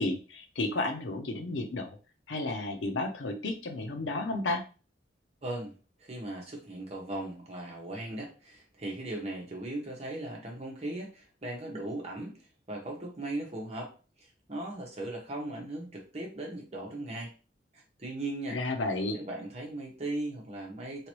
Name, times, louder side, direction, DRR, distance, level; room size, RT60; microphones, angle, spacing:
voice 1, 0.0-2.0 2.3-4.6 18.5-19.2, left 2 dB, 90° left, 4 dB, 0.7 m, -32 dB
voice 2, 5.4-12.3 12.7-17.3 18.0-18.6 19.1-21.1, right 1 dB, 35° right, -1 dB, 1.1 m, -38 dB
3.2 x 2.9 x 3.0 m, 0.35 s
head